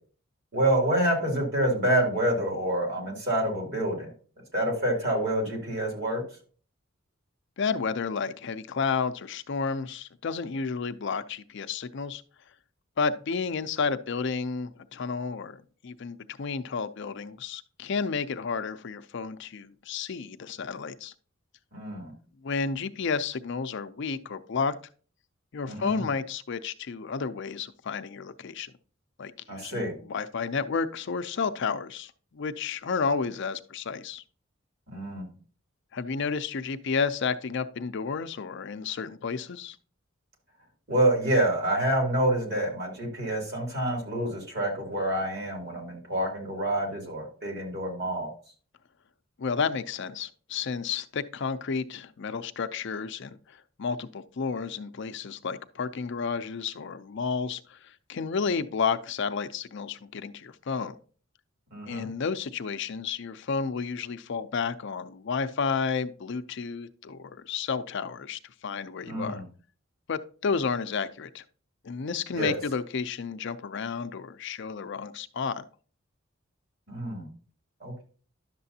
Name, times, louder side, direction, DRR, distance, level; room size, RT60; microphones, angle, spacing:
voice 1, 0.5-4.1 4.5-6.2 21.7-22.1 25.6-26.0 29.5-29.9 34.9-35.3 40.9-48.3 61.7-62.1 69.1-69.4 72.3-72.6 76.9-77.3 77.8-78.0, right 1 dB, 55° right, 0 dB, 2.9 m, -27 dB
voice 2, 7.6-12.2 13.0-21.1 22.4-24.8 25.5-28.7 29.2-34.2 35.9-39.8 49.4-61.0 61.9-69.4 70.1-71.4 71.8-75.7, left 5 dB, 60° left, 11 dB, 0.5 m, -31 dB
11.0 x 6.8 x 2.8 m, 0.41 s
head